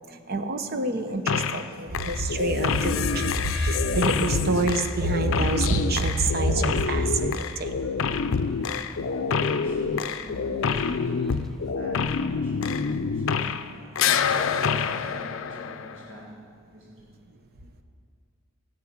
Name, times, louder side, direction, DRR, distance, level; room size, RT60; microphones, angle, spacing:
voice 1, 0.1-7.7, right 2 dB, 50° right, 7 dB, 0.8 m, -26 dB
sound 1, 1.3-1.7 1.9-13.7 14.0-16.2, left 5 dB, 80° left, 0.5 m, -27 dB
sound 2, 4.8-11.7, equal, ahead, 0.5 m, -47 dB
voice 2, 9.5-11.2 11.8-12.0 12.3-13.9 14.5-16.5 16.7-17.1, equal, 65° right, -4 dB, 1.8 m, -46 dB
13.5 x 6.5 x 8.7 m, 2.3 s
head